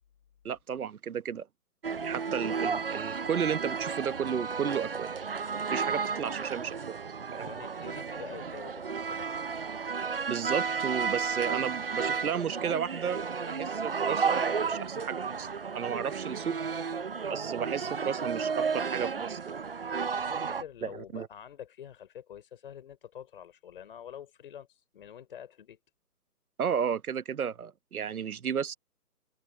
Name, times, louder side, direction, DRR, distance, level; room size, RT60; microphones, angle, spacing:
voice 1, 0.4-1.5 2.0-5.1 5.7-7.0 7.3-7.5 10.3-13.2 13.5-15.5 15.7-16.5 17.3-19.4 20.8-21.3 26.6-28.7, right 7 dB, 65° right, 1.1 m, -33 dB
sound 1, 1.8-20.6, right 5 dB, 35° right, 0.7 m, -33 dB
voice 2, 7.4-9.3 20.2-25.8, left 9 dB, 35° left, 3.6 m, -47 dB
hypercardioid pair, 165°, 47 cm